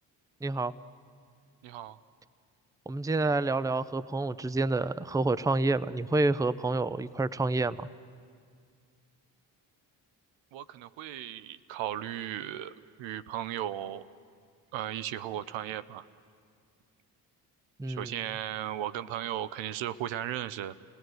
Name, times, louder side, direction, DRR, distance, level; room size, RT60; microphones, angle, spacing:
voice 1, 0.4-0.7 2.9-7.9 17.8-18.2, right 2 dB, 10° right, 17 dB, 0.6 m, -28 dB
voice 2, 1.6-2.0 10.5-12.7 13.0-14.0 14.7-16.0 17.9-20.8, right 12 dB, 80° right, 14 dB, 0.7 m, -36 dB
27.5 x 17.5 x 7.8 m, 2.1 s
supercardioid pair, 50°, 45 cm